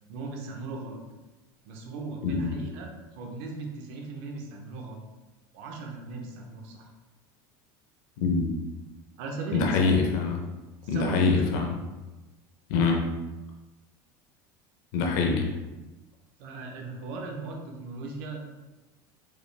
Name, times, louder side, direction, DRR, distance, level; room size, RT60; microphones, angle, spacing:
voice 1, 0.1-1.0 1.6-5.1 5.5-6.9 9.2-10.0 10.8-11.5 16.4-18.4, right 3 dB, 60° right, 1 dB, 0.8 m, -37 dB
voice 2, 8.2-8.5 9.5-10.4 10.9-11.7 12.7-13.0 14.9-15.5, left 4 dB, 65° left, 1 dB, 0.7 m, -24 dB
4.9 x 2.4 x 3.3 m, 1.1 s
cardioid pair, 165°, 10 cm